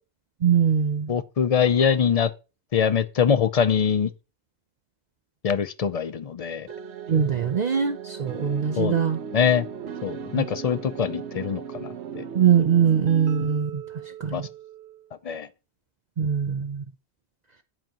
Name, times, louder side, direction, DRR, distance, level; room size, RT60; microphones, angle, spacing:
voice 1, 0.4-1.2 7.1-9.2 10.3-10.5 12.3-13.8 14.2-14.5 16.2-16.8, right 8 dB, 50° right, 0.6 m, -22 dB
voice 2, 1.1-2.3 2.7-4.1 5.4-6.7 8.8-9.0 9.3-9.7 10.0-12.2 14.3-14.4 15.2-15.5, left 7 dB, 50° left, 0.4 m, -23 dB
sound 1, 6.7-15.1, right 7 dB, 80° right, 1.1 m, -37 dB
8.9 x 7.9 x 2.9 m
omnidirectional pair, 1.1 m